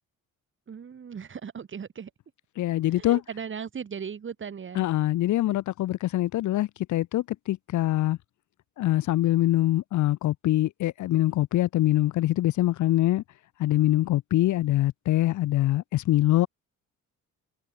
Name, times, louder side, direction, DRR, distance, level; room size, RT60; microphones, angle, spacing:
voice 1, 0.7-2.1 2.9-4.9 5.4-5.5, right 7 dB, 40° right, 5.7 m, -38 dB
voice 2, 2.6-3.2 4.8-8.2 8.8-13.2 13.6-16.5, left 15 dB, 65° left, 0.8 m, -24 dB
cardioid pair, 125°, 31 cm